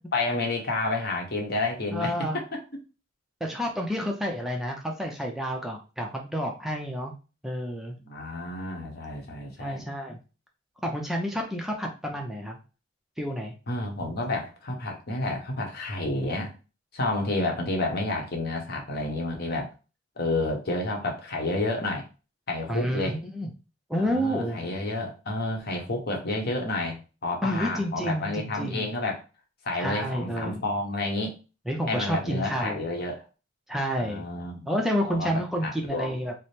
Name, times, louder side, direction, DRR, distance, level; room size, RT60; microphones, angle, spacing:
voice 1, 0.1-2.6 4.0-4.1 8.0-9.8 13.7-16.5 16.9-19.7 20.2-22.1 22.5-23.2 24.0-29.2 29.6-31.4 31.9-33.3 34.0-34.7 35.1-35.3 35.6-36.2, left 2 dB, 55° left, 2 dB, 0.9 m, -30 dB
voice 2, 1.9-2.4 3.4-7.1 7.4-8.0 9.6-10.2 10.8-12.6 13.2-13.5 22.7-23.5 23.9-24.7 27.4-28.9 29.8-30.6 31.7-32.8 33.7-34.3 34.7-36.3, equal, ahead, 1 dB, 0.4 m, -29 dB
3.3 x 2.0 x 4.2 m, 0.33 s
head